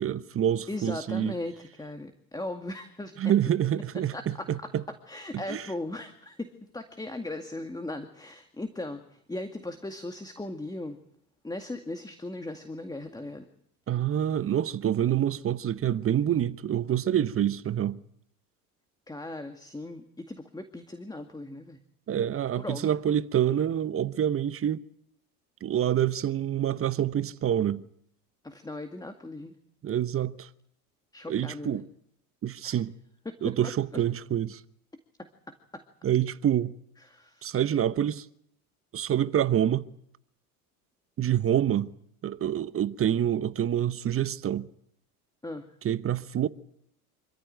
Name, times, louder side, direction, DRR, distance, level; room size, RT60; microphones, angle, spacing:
voice 1, 0.0-1.3 3.2-4.8 5.5-5.6 13.9-18.0 22.1-24.8 25.6-27.8 29.8-30.5 31.3-31.9 32.4-32.9 33.4-34.6 36.0-36.7 37.4-38.3 38.9-39.9 41.2-41.9 42.2-44.7 45.8-46.5, right 10 dB, 30° right, 1.0 m, -27 dB
voice 2, 0.7-3.1 4.1-4.7 5.1-11.0 11.4-13.5 19.1-21.8 22.6-22.9 28.4-29.6 31.1-31.8 32.6-32.8 33.3-33.6 35.2-35.8 37.0-37.4 45.4-45.7, left 2 dB, 10° left, 2.1 m, -38 dB
26.5 x 15.0 x 9.2 m
hypercardioid pair, 75°, 45 cm